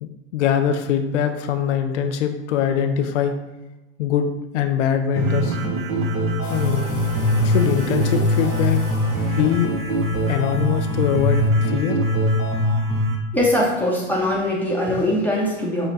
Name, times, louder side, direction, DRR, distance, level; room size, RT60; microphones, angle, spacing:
voice 1, 0.0-3.3 4.0-5.6 6.5-6.9 7.4-8.8 9.3-9.7 10.3-12.0, left 8 dB, 85° left, 7 dB, 0.5 m, -22 dB
sound 1, 5.2-13.1, equal, 40° right, 1.1 m, -22 dB
sound 2, 6.4-11.5, left 4 dB, 45° left, 0.7 m, -38 dB
voice 2, 13.3-15.9, left 1 dB, 5° left, -4 dB, 0.9 m, -21 dB
5.5 x 2.1 x 4.0 m, 1.0 s
hypercardioid pair, 105°, 35 cm